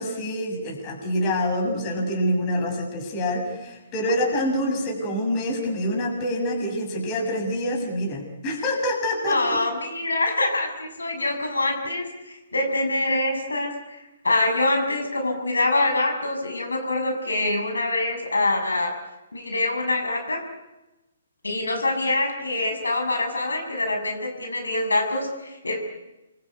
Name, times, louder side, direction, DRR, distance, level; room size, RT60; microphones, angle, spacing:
voice 1, 0.0-9.6, equal, 30° left, 3 dB, 6.6 m, -26 dB
voice 2, 9.3-18.9 19.3-20.4 21.4-25.8, left 2 dB, 80° left, 4 dB, 7.0 m, -25 dB
29.0 x 23.5 x 8.5 m, 1.0 s
figure-of-eight pair, 130°, 0 cm